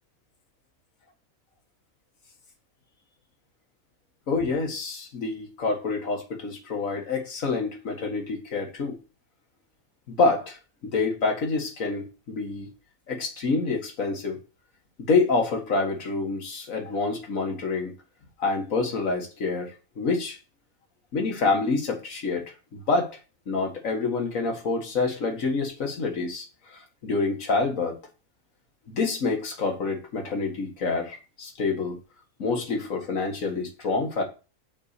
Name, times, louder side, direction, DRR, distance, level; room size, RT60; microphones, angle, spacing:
voice 1, 4.3-9.0 10.1-10.6 10.8-12.7 13.1-14.4 15.1-17.9 18.4-20.4 21.1-23.2 23.5-26.5 26.7-28.0 28.9-32.0 32.4-34.2, left 3 dB, 90° left, 2 dB, 2.1 m, -27 dB
8.6 x 4.2 x 6.6 m, 0.32 s
omnidirectional pair, 1.4 m